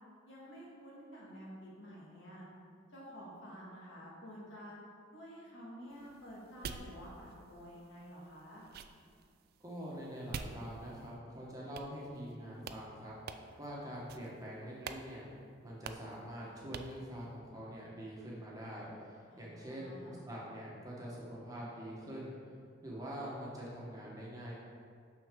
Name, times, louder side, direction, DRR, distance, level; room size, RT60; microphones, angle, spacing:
voice 1, 0.3-2.5 2.9-4.8 5.1-8.6 19.3-20.2, equal, 70° left, -5 dB, 1.8 m, -50 dB
sound 1, 5.9-11.2 11.8-12.4 12.6-12.8 13.3-13.7 14.1-14.4 14.8-15.1 15.3-15.4 15.8-16.2 16.7-17.0, right 5 dB, 50° right, 0.3 m, -48 dB
voice 2, 9.6-13.1 13.6-15.3 15.6-22.4 22.8-24.5, equal, 20° right, -6 dB, 1.2 m, -45 dB
6.2 x 6.1 x 3.7 m, 2.2 s
head